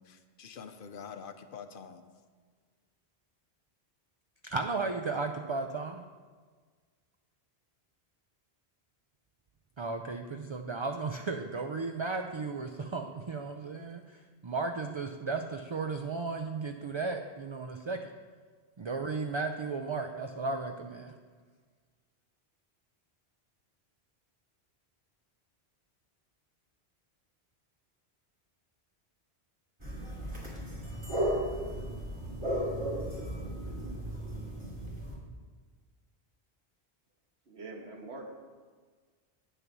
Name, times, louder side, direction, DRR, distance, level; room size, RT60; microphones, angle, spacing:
voice 1, 0.0-2.0, left 6 dB, 60° left, 9 dB, 0.8 m, -46 dB
voice 2, 4.4-6.0 9.8-18.0 18.8-21.1, right 4 dB, 45° right, 5 dB, 0.3 m, -35 dB
sound 1, 29.8-35.1, equal, 25° right, 2.5 m, -35 dB
voice 3, 37.5-38.2, right 3 dB, 80° right, 1 dB, 1.7 m, -44 dB
8.9 x 6.6 x 6.1 m, 1.5 s
omnidirectional pair, 1.1 m